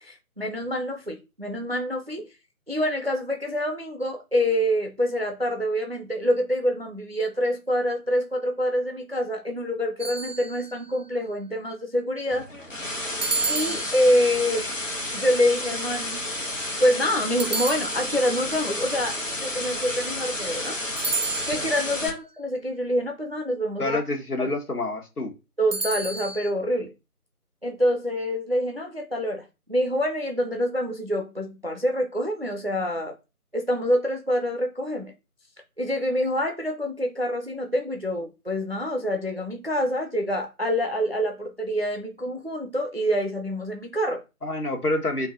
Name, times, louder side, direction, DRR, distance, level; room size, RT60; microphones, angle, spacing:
voice 1, 0.0-2.3 2.7-12.5 13.5-14.8 15.1-16.3 16.8-20.8 21.5-24.0 25.6-26.9 27.6-29.4 29.7-33.1 33.5-35.1 35.8-44.2, equal, 40° right, 0.5 m, -26 dB
sound 1, 10.0-10.9 13.2-14.5 17.4-18.4 21.0-21.9 25.7-26.5, right 4 dB, 75° right, 0.7 m, -31 dB
sound 2, 12.3-22.1, left 1 dB, 55° left, 1.2 m, -31 dB
voice 2, 23.8-25.3 44.4-45.3, left 2 dB, 75° left, 1.5 m, -27 dB
3.9 x 2.6 x 3.8 m
figure-of-eight pair, 165°, 46 cm